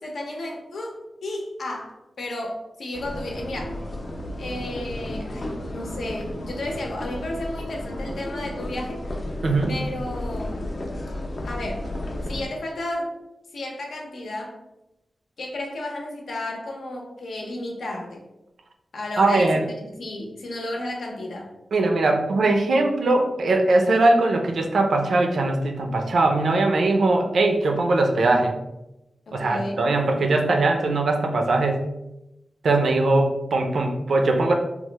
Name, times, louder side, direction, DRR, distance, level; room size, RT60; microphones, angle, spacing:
voice 1, 0.0-3.8 4.4-9.0 9.7-10.6 11.4-11.9 12.3-13.1 13.5-14.6 15.4-18.2 18.9-21.5 29.3-29.8, left 1 dB, 85° left, 0 dB, 0.7 m, -33 dB
sound 1, 2.9-12.5, left 1 dB, 45° left, 0.5 m, -33 dB
voice 2, 19.2-19.7 21.7-28.5 29.3-31.8 32.6-34.5, right 2 dB, 75° right, 3 dB, 0.4 m, -20 dB
3.0 x 2.0 x 3.2 m, 0.92 s
wide cardioid pair, 130°, 0 cm